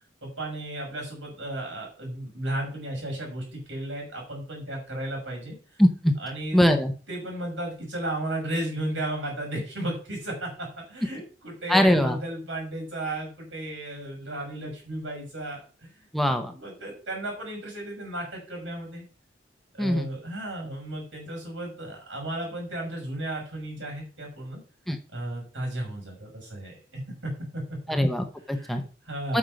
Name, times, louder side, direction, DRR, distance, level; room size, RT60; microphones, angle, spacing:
voice 1, 0.2-5.6 6.2-6.6 7.1-16.1 16.3-19.1 19.7-24.6 25.1-27.6 28.5-29.4, right 1 dB, 85° right, 0 dB, 6.2 m, -34 dB
voice 2, 5.8-6.1 6.5-6.9 11.7-12.2 16.1-16.5 19.8-20.1 24.9-25.0 27.9-28.8 29.3-29.4, equal, ahead, 5 dB, 0.8 m, -22 dB
9.1 x 6.2 x 5.3 m, 0.37 s
head